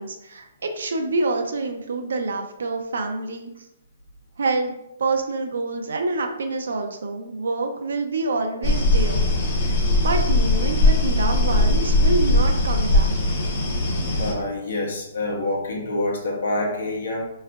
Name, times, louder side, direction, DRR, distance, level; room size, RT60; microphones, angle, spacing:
voice 1, 0.0-3.5 4.4-4.7 5.0-9.3 9.6-13.1, right 3 dB, 85° right, 4 dB, 0.5 m, -27 dB
sound 1, 8.6-14.3, left 1 dB, 35° left, 0.8 m, -20 dB
voice 2, 14.2-17.3, left 2 dB, 75° left, 0 dB, 1.0 m, -26 dB
4.6 x 3.2 x 2.4 m, 0.86 s
hypercardioid pair, 175°, 0 cm